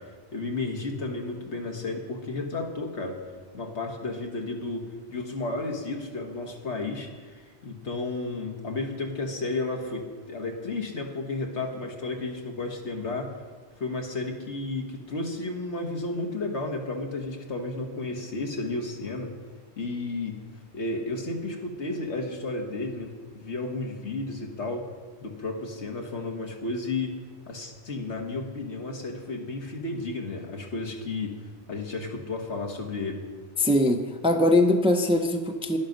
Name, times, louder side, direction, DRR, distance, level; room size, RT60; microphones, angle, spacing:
voice 1, 0.0-3.2 3.5-13.3 13.8-19.3 19.8-20.4 20.7-24.9 25.2-27.1 27.5-31.4 31.7-33.2, left 3 dB, 80° left, 2 dB, 1.8 m, -32 dB
voice 2, 33.6-35.8, left 1 dB, 5° right, 5 dB, 0.6 m, -22 dB
11.5 x 10.5 x 5.3 m, 1.5 s
omnidirectional pair, 1.1 m